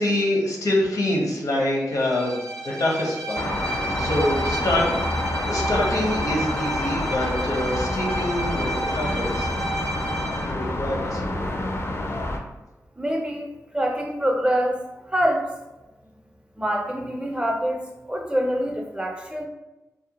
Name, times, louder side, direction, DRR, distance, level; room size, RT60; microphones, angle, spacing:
voice 1, 0.0-3.5 4.0-4.8 5.4-9.5 10.2-11.5, left 1 dB, 80° left, -2 dB, 0.7 m, -25 dB
Bowed string instrument, 1.9-10.5, right 1 dB, 90° right, 0.5 m, -32 dB
sound 1, 3.3-12.4, left 1 dB, 45° left, 0.4 m, -28 dB
voice 2, 13.0-13.5 13.7-14.8 15.1-15.5 16.6-17.8 18.1-19.5, equal, 15° right, 1 dB, 0.4 m, -25 dB
2.5 x 2.1 x 2.8 m, 1.0 s
cardioid pair, 60°, 6 cm